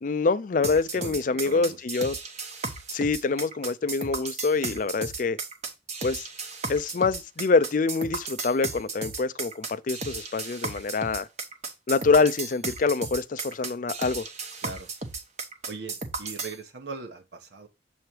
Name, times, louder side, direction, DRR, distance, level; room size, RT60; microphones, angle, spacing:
voice 1, 0.0-2.1 2.9-5.4 6.0-6.3 6.7-11.3 11.9-14.3, left 4 dB, 50° left, 0.4 m, -25 dB
sound 1, 0.6-16.6, right 4 dB, 40° right, 1.0 m, -34 dB
voice 2, 0.9-1.8 14.6-14.9 15.7-17.7, right 4 dB, 80° right, 1.1 m, -40 dB
7.0 x 3.2 x 4.5 m
head